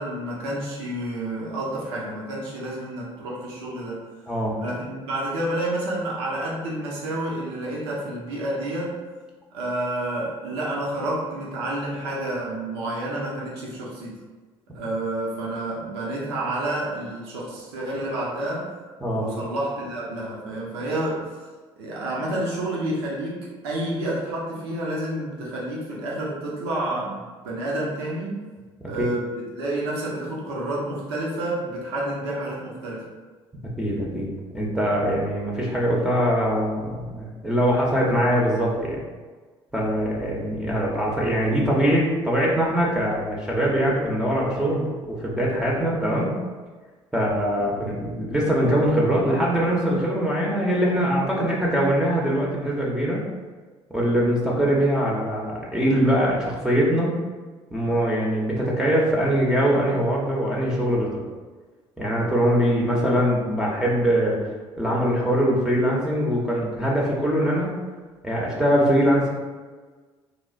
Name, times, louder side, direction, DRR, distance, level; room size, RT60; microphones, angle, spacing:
voice 1, 0.0-4.0 4.6-9.0 9.5-14.2 14.7-18.7 19.1-21.3 21.8-28.4 28.9-33.0, right 1 dB, 75° right, -5 dB, 0.7 m, -29 dB
voice 2, 33.8-39.0 39.7-46.4 47.1-53.2 53.9-57.2 57.7-61.2 62.0-64.4 64.8-67.8 68.2-69.3, equal, 5° right, -5 dB, 0.6 m, -22 dB
3.2 x 2.4 x 2.3 m, 1.4 s
figure-of-eight pair, 55°, 14 cm